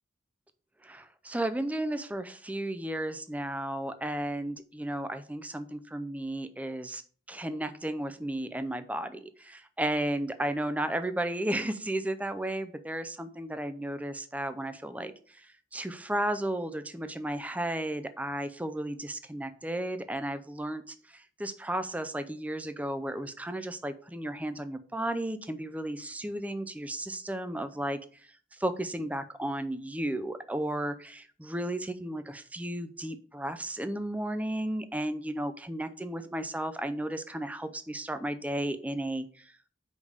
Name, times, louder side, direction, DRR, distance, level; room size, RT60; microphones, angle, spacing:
voice 1, 0.8-7.0 7.3-28.0 28.5-39.5, right 1 dB, 10° right, 11 dB, 0.5 m, -34 dB
5.3 x 5.0 x 6.5 m, 0.43 s
head